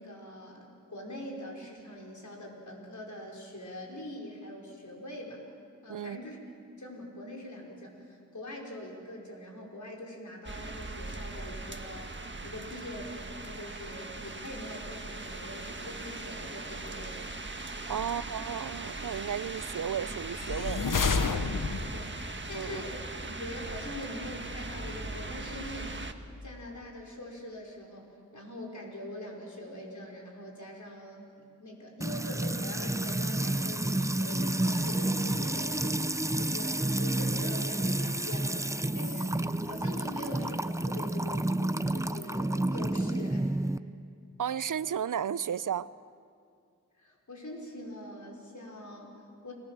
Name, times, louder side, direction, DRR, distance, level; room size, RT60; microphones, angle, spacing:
voice 1, 0.0-5.4 5.8-6.4 6.8-12.1 12.4-17.2 17.9-18.1 21.9-23.0 23.3-25.9 26.4-28.1 28.3-31.3 31.6-43.6 47.0-49.5, left 1 dB, 65° left, -1 dB, 5.2 m, -43 dB
sound 1, 10.4-26.1, right 2 dB, 35° right, 1.6 m, -40 dB
voice 2, 17.9-20.9 22.5-22.8 44.4-45.9, right 8 dB, 80° right, 18 dB, 0.5 m, -33 dB
sound 2, 20.3-22.1, left 4 dB, 90° left, 1.2 m, -29 dB
Music / Water tap faucet / Trickle dribble, 32.0-43.8, right 1 dB, 10° right, 0.6 m, -30 dB
29.5 x 18.5 x 7.5 m, 2.3 s
wide cardioid pair, 50°, 31 cm